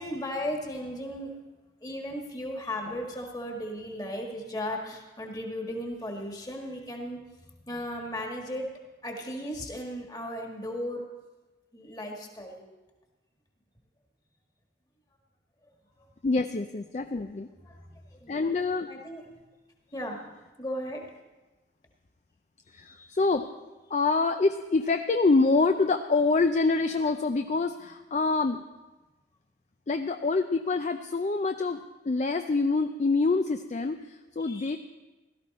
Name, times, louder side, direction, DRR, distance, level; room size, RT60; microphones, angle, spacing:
voice 1, 0.0-1.3 1.8-7.2 7.7-8.7 9.0-11.0 11.7-12.7 16.0-16.1 17.6-18.5 18.9-19.2 19.9-20.2 20.6-21.0 34.4-34.8, equal, 20° left, 1 dB, 1.7 m, -36 dB
voice 2, 16.2-17.5 18.3-18.9 22.7-23.5 23.9-28.6 29.9-34.8, left 3 dB, 40° left, 7 dB, 0.4 m, -26 dB
16.5 x 13.0 x 4.2 m, 1.2 s
head